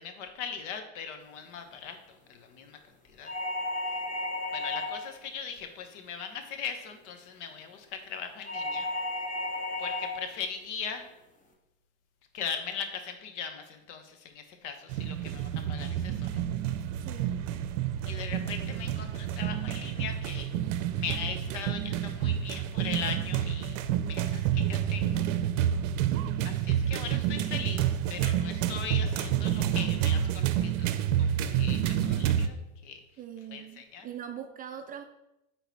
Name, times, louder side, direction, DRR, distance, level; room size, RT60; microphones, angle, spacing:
voice 1, 0.0-2.8 3.0-3.3 4.5-8.9 9.8-11.1 12.3-16.4 18.1-20.5 20.9-25.3 26.4-30.9 31.2-32.6 32.8-33.0 33.5-34.1, left 6 dB, 65° left, 6 dB, 1.2 m, -39 dB
sound 1, 3.3-5.2 8.5-10.3, left 2 dB, 20° left, 1.1 m, -33 dB
sound 2, 14.9-32.5, right 10 dB, 70° right, 0.6 m, -29 dB
voice 2, 17.0-17.3 33.2-35.0, right 9 dB, 25° right, 6 dB, 0.4 m, -42 dB
9.1 x 4.0 x 4.1 m, 0.92 s
supercardioid pair, 110°, 38 cm